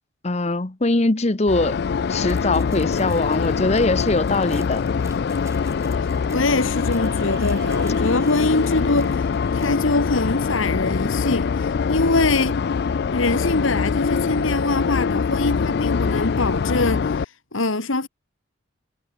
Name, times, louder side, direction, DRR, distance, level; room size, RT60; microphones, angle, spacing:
voice 1, 0.2-1.8 2.1-4.8, left 2 dB, 30° left, 0.9 m, -22 dB
sound 1, 1.5-17.2, left 5 dB, 50° left, 0.3 m, -23 dB
sound 2, 2.3-9.8, right 4 dB, 15° right, 6.4 m, -51 dB
sound 3, 5.6-13.8, right 5 dB, 55° right, 5.5 m, -49 dB
voice 2, 6.3-12.6 13.1-18.1, left 2 dB, 80° left, 2.3 m, -23 dB
head